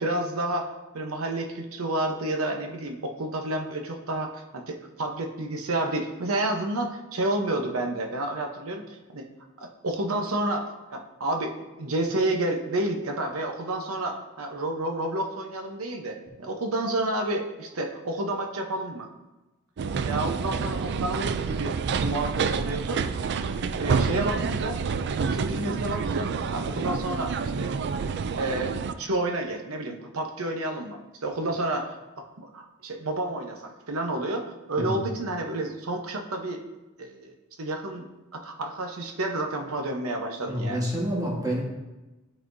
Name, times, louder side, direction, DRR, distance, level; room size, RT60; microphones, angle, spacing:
voice 1, 0.0-8.8 9.1-9.2 9.6-19.1 20.0-23.0 23.8-24.8 25.3-27.7 28.4-36.6 37.0-37.3 37.6-38.1 38.3-40.8, right 1 dB, 90° right, 3 dB, 0.9 m, -30 dB
sound 1, 19.8-28.9, right 5 dB, 55° right, 0.4 m, -28 dB
voice 2, 40.4-41.6, equal, 15° right, -2 dB, 1.4 m, -28 dB
12.0 x 4.2 x 2.7 m, 1.1 s
head